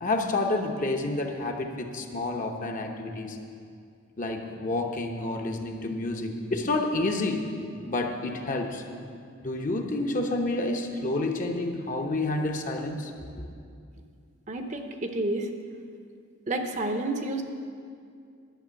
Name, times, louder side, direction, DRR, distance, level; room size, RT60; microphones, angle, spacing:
voice 1, 0.0-3.4 4.2-7.5 7.8-8.8 9.4-13.1 13.4-13.5, left 2 dB, 40° left, 3 dB, 0.9 m, -29 dB
voice 2, 14.5-15.5 16.5-17.4, right 2 dB, 35° right, 5 dB, 0.7 m, -30 dB
11.5 x 6.7 x 8.2 m, 2.3 s
head